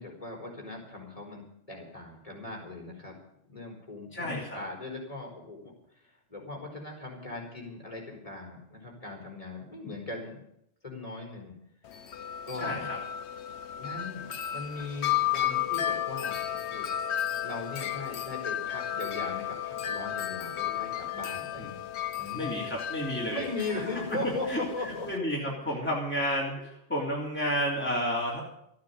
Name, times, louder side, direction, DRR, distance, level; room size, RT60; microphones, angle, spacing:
voice 1, 0.0-3.1 3.5-10.4 10.8-11.5 12.0-12.1 12.4-12.9 13.8-16.9 17.4-21.7 22.2-22.7 23.3-25.1 25.4-25.5, left 2 dB, 30° left, -1 dB, 4.4 m, -39 dB
voice 2, 4.1-4.6 12.5-13.0 21.6-21.7 22.3-24.2 24.5-28.4, equal, 10° left, -5 dB, 3.5 m, -32 dB
Wind chime, 11.8-25.2, left 11 dB, 70° left, 1.0 m, -33 dB
14.0 x 9.4 x 9.7 m, 0.75 s
omnidirectional pair, 1.2 m